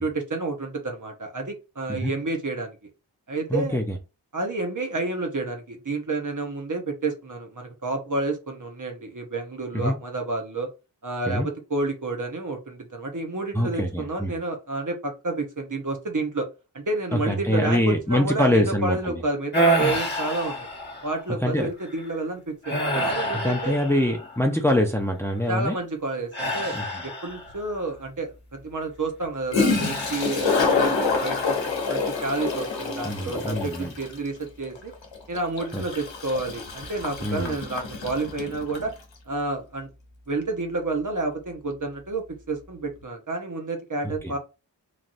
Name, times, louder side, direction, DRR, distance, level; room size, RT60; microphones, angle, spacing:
voice 1, 0.0-2.8 3.3-3.8 4.3-10.7 11.0-16.5 16.7-20.7 21.0-23.8 25.5-26.8 27.0-34.9 35.3-38.9 39.3-39.9 40.3-44.4, right 2 dB, 45° right, 3 dB, 1.0 m, -30 dB
voice 2, 3.5-3.8 9.7-9.9 11.3-11.5 13.5-14.3 17.1-19.2 21.4-21.7 23.3-25.8 26.7-26.8 33.0-33.9 35.7-35.8 37.2-37.6 44.2-44.3, left 1 dB, 5° left, 3 dB, 0.7 m, -24 dB
sound 1, 19.5-21.2 21.8-22.1 22.6-24.5 26.3-27.7 29.7-30.8 31.2-31.7, right 1 dB, 25° left, 1.4 m, -28 dB
Toilet flush, 27.5-27.6 29.2-29.3 29.5-38.9, left 4 dB, 85° left, 0.9 m, -27 dB
3.2 x 2.6 x 2.6 m, 0.28 s
cardioid pair, 40°, 43 cm